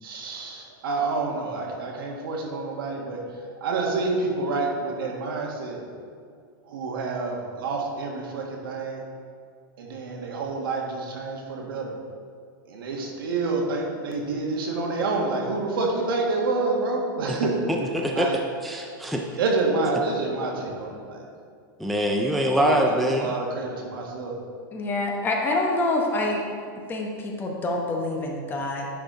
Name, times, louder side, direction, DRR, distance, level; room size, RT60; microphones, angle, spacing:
voice 1, 0.0-3.2 3.6-5.8 6.7-9.1 9.8-12.0 12.6-17.6 18.1-18.4 19.4-21.2 22.5-24.4, right 3 dB, 80° right, 0 dB, 1.7 m, -28 dB
voice 2, 17.7-18.3 18.6-19.3 21.8-23.4, equal, ahead, 1 dB, 0.3 m, -24 dB
voice 3, 24.7-26.4 26.9-28.9, left 2 dB, 15° left, 1 dB, 0.9 m, -26 dB
10.0 x 4.9 x 3.8 m, 2.2 s
supercardioid pair, 155°, 12 cm